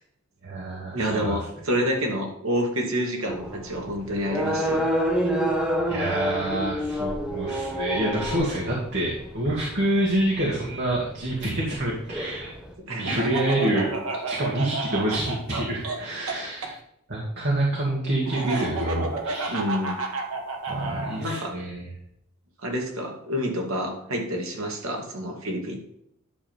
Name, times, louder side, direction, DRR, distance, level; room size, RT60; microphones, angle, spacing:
voice 1, 0.4-1.4 5.9-12.5 12.9-13.9 14.2-16.8 17.1-19.6 20.6-21.9, right 1 dB, 50° right, -4 dB, 2.2 m, -27 dB
voice 2, 0.9-4.9 12.9-13.2 19.5-20.0 21.2-21.5 22.6-25.8, equal, 70° right, 1 dB, 2.3 m, -28 dB
sound 1, 3.3-12.7, equal, 5° right, 1.1 m, -28 dB
Laughter, 13.0-16.7 18.2-21.2, right 3 dB, 90° right, 1.5 m, -31 dB
11.0 x 3.8 x 7.3 m, 0.75 s
head